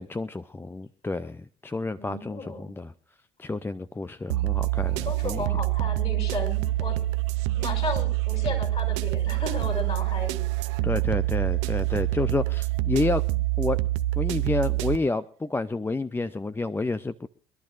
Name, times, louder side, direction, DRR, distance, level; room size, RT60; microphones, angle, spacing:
voice 1, 0.0-2.9 3.4-5.4 10.8-13.2 13.6-13.8 14.2-17.3, left 3 dB, 15° left, 13 dB, 0.6 m, -29 dB
voice 2, 2.0-2.7 5.0-7.0 7.5-10.9, left 3 dB, 40° left, 2 dB, 6.3 m, -34 dB
sound 1, 4.3-15.0, right 18 dB, 75° right, 0.6 m, -26 dB
25.5 x 11.5 x 2.6 m, 0.43 s
hypercardioid pair, 60°, 16 cm